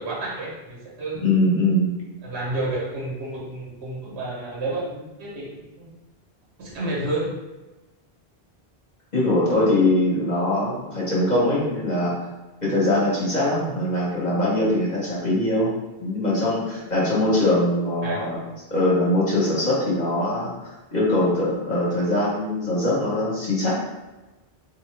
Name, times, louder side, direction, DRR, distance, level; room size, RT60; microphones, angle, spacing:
voice 1, 0.0-1.2 2.2-5.9 6.6-7.4 18.0-18.3, right 2 dB, 85° right, -4 dB, 1.1 m, -30 dB
voice 2, 1.2-2.0 9.1-12.2 12.6-15.7 16.0-18.4 18.7-20.5 20.9-23.7, left 1 dB, 45° left, -7 dB, 1.1 m, -22 dB
3.7 x 2.6 x 3.2 m, 1.1 s
omnidirectional pair, 1.1 m